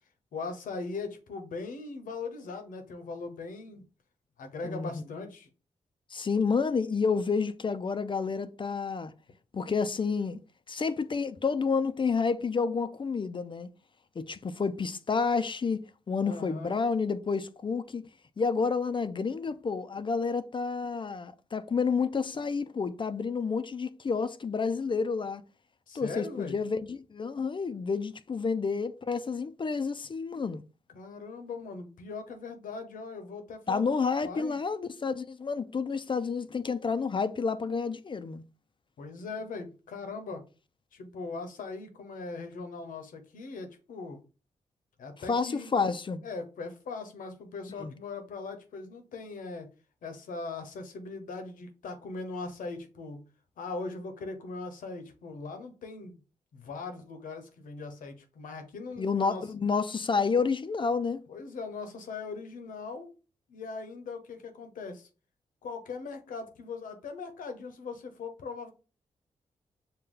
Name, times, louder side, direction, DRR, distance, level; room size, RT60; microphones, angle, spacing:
voice 1, 0.3-3.8 4.4-5.5 16.2-16.8 25.9-26.6 30.9-34.6 39.0-40.5 40.9-44.2 45.0-45.7 46.2-49.7 50.0-53.2 53.6-56.2 56.5-59.4 61.3-63.1 63.5-65.1 65.6-68.7, left 4 dB, 80° left, 0.8 m, -40 dB
voice 2, 6.1-9.1 9.5-10.4 10.7-13.7 14.2-18.0 18.4-25.4 25.9-30.6 33.7-38.4 45.3-46.2 47.8-47.9 59.0-61.2, left 5 dB, 35° left, 0.4 m, -30 dB
5.3 x 2.2 x 3.7 m
cardioid pair, 50°, 14 cm